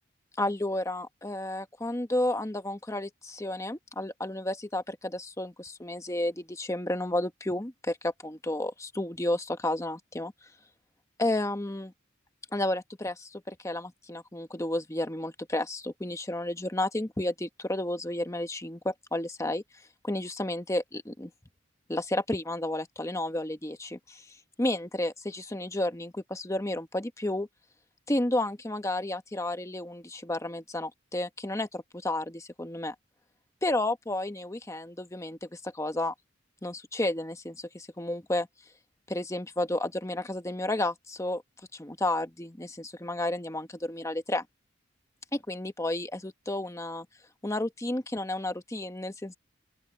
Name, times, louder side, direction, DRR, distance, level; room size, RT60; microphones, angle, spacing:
voice 1, 0.4-10.3 11.2-11.9 12.5-19.6 20.0-21.3 21.9-24.3 24.6-27.5 28.1-32.9 33.6-36.1 36.6-38.5 39.1-41.4 41.7-44.4 45.3-47.1 47.4-49.4, left 1 dB, 15° left, 1.1 m, -32 dB
open air
head